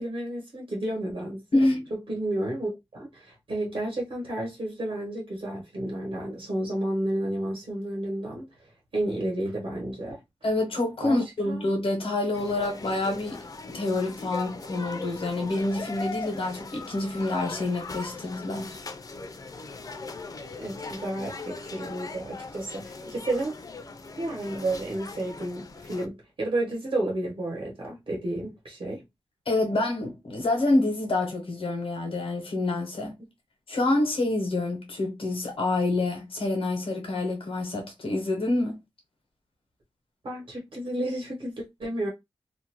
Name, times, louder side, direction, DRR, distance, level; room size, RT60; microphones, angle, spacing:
voice 1, 0.0-1.4 2.1-8.5 8.9-10.2 11.0-11.2 11.4-11.6 20.6-23.5 24.2-29.0 40.2-42.1, right 1 dB, 75° right, 1.0 m, -31 dB
voice 2, 1.5-1.8 10.4-18.8 29.5-33.2 33.7-38.8, left 2 dB, 80° left, 0.9 m, -27 dB
sound 1, 12.3-26.1, left 3 dB, 40° left, 0.4 m, -39 dB
2.5 x 2.1 x 2.9 m
wide cardioid pair, 90°, 9 cm